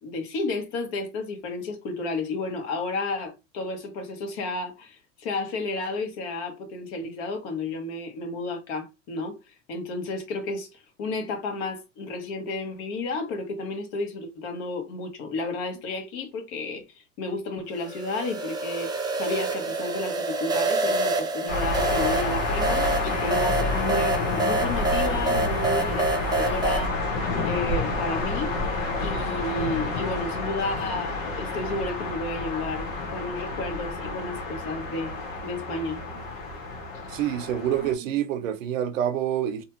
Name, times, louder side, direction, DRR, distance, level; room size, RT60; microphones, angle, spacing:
voice 1, 0.0-26.9 27.4-28.6 29.0-35.2 35.4-36.0, left 2 dB, 60° left, 1.3 m, -32 dB
sound 1, 17.8-26.9, right 2 dB, 10° right, 0.5 m, -27 dB
sound 2, 21.5-37.9, left 2 dB, 90° left, 1.2 m, -29 dB
voice 2, 37.1-39.6, right 10 dB, 85° right, 0.7 m, -27 dB
2.7 x 2.3 x 3.0 m
hypercardioid pair, 105°, 38 cm